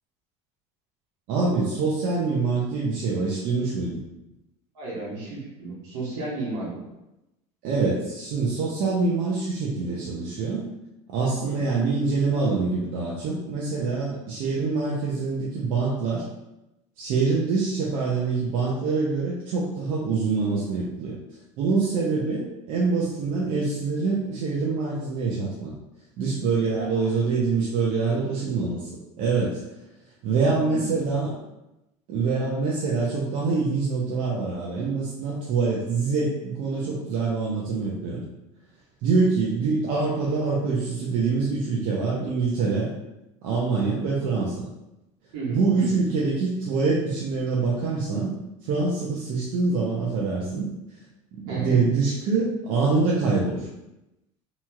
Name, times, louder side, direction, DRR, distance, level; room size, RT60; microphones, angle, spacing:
voice 1, 1.3-4.0 7.6-10.6 11.1-16.2 17.0-21.1 21.6-25.7 26.2-28.9 29.2-29.6 30.2-31.3 32.1-38.2 39.0-42.9 43.4-44.7 45.5-48.3 48.6-50.7 51.3-53.7, right 4 dB, 65° right, -5 dB, 0.7 m, -25 dB
voice 2, 4.7-6.8 11.4-11.6 26.7-27.1 30.6-31.0 45.3-46.0 51.5-51.9, right 2 dB, 85° right, -6 dB, 1.3 m, -33 dB
2.9 x 2.8 x 2.4 m, 0.94 s
supercardioid pair, 95°, 15 cm